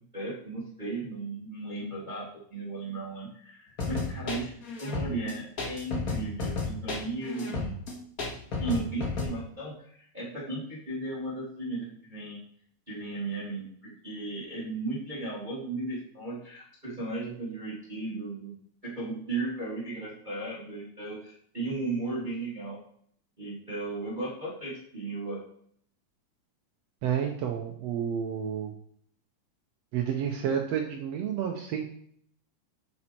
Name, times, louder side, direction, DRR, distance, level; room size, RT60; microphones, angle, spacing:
voice 1, 0.1-4.5 4.8-7.8 8.6-12.4 12.9-18.5 18.8-22.8 23.4-25.4, right 2 dB, 15° right, -7 dB, 1.7 m, -35 dB
sound 1, 3.8-9.2, left 4 dB, 45° left, 1.2 m, -32 dB
voice 2, 27.0-28.7 29.9-31.9, right 8 dB, 80° right, 3 dB, 1.5 m, -30 dB
8.8 x 5.4 x 4.4 m, 0.64 s
omnidirectional pair, 4.0 m